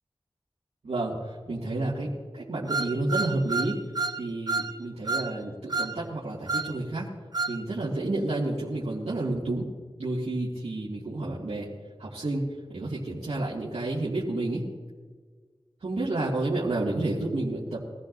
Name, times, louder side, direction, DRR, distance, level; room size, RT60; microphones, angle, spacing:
voice 1, 0.8-3.8 4.2-7.1 7.5-9.7 10.0-11.7 12.0-12.4 12.7-14.6 15.8-17.8, right 2 dB, 85° right, -7 dB, 2.0 m, -30 dB
sound 1, 2.7-4.2 4.5-4.7 5.1-5.3 5.7-5.9 6.5-6.7 7.3-7.6, right 3 dB, 40° right, 0.9 m, -29 dB
22.5 x 14.0 x 2.6 m, 1.5 s
wide cardioid pair, 50°, 10 cm